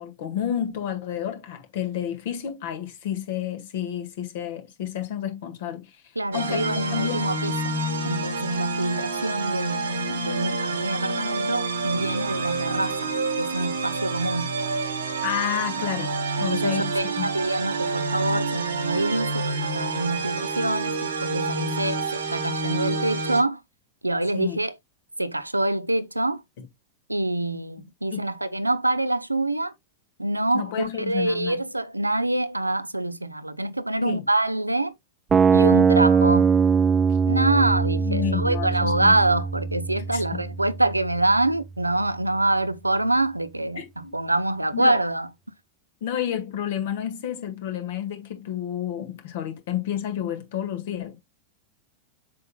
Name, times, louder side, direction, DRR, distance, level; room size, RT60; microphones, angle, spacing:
voice 1, 0.0-5.8 6.3-6.6 6.9-7.2 15.2-16.9 17.2-17.3 24.3-24.6 28.1-28.3 30.5-31.6 34.0-34.2 38.0-39.1 40.1-40.2 43.7-43.8 44.7-45.0 46.0-51.2, left 10 dB, 55° left, 1.7 m, -30 dB
voice 2, 6.2-13.1 13.4-14.5 16.4-23.6 24.0-24.7 25.2-26.4 27.1-29.7 30.2-34.9 35.5-36.5 37.3-45.3, right 2 dB, 85° right, 0.5 m, -25 dB
sound 1, 6.3-23.4, right 3 dB, 70° right, 1.4 m, -28 dB
sound 2, 35.3-41.3, right 6 dB, 20° right, 0.4 m, -21 dB
7.5 x 5.6 x 2.2 m
figure-of-eight pair, 90°, 0 cm